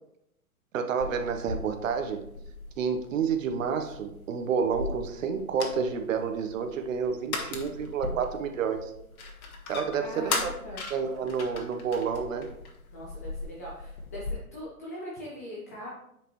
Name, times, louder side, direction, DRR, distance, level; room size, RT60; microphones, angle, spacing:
voice 1, 0.7-2.3 2.8-8.9 9.7-10.5 10.9-12.5, right 6 dB, 60° right, 6 dB, 1.1 m, -29 dB
sound 1, 1.0-14.3, left 3 dB, 65° left, 1.7 m, -38 dB
voice 2, 10.0-10.8 12.9-15.9, equal, 10° left, -5 dB, 0.4 m, -41 dB
9.5 x 5.1 x 3.1 m, 0.79 s
hypercardioid pair, 135°, 45 cm